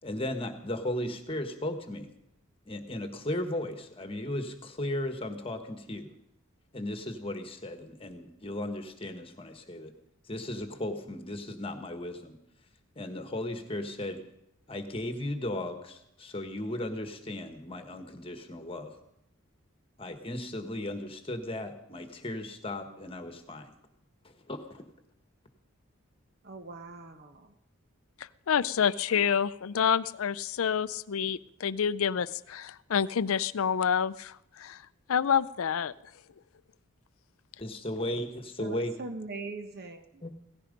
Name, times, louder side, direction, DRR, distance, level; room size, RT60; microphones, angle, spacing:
voice 1, 0.0-2.1 2.7-6.1 6.7-9.9 10.3-12.4 12.9-14.2 14.7-18.9 20.0-23.7 24.2-24.8 37.6-38.9 40.2-40.4, left 1 dB, 25° left, 7 dB, 1.4 m, -36 dB
voice 2, 26.4-27.5 38.6-40.2, right 3 dB, 45° right, 7 dB, 1.0 m, -41 dB
voice 3, 28.5-34.8 35.1-35.9, left 7 dB, 75° left, 17 dB, 0.5 m, -28 dB
17.0 x 14.5 x 5.3 m, 0.81 s
head